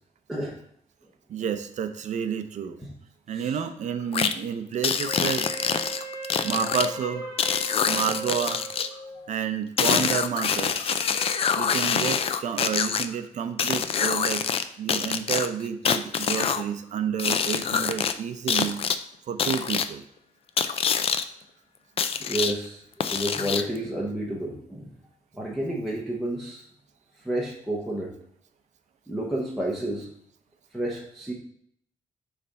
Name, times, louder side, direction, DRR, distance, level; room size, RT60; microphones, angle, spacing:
voice 1, 1.3-2.8 3.3-5.5 6.4-7.2 7.9-8.6 9.3-10.9 11.5-14.4 14.8-18.8 19.3-20.0, right 7 dB, 60° right, 8 dB, 0.6 m, -30 dB
sound 1, 4.1-4.3 4.8-6.9 7.4-8.9 9.8-13.0 13.6-14.6 14.9-16.6 17.2-18.1 18.5-19.0 19.4-19.9 20.6-21.2 22.0-22.5 23.0-23.8, left 7 dB, 45° left, 0.4 m, -25 dB
Wind instrument woodwind instrument, 5.1-9.3, right 2 dB, 25° left, 3.0 m, -38 dB
voice 2, 8.9-9.3 10.6-10.7 13.1-13.2 22.2-24.9 25.3-26.7 27.2-28.1 29.1-30.1 30.7-31.3, right 1 dB, ahead, -4 dB, 0.8 m, -31 dB
6.8 x 3.4 x 5.2 m, 0.67 s
wide cardioid pair, 165°, 14 cm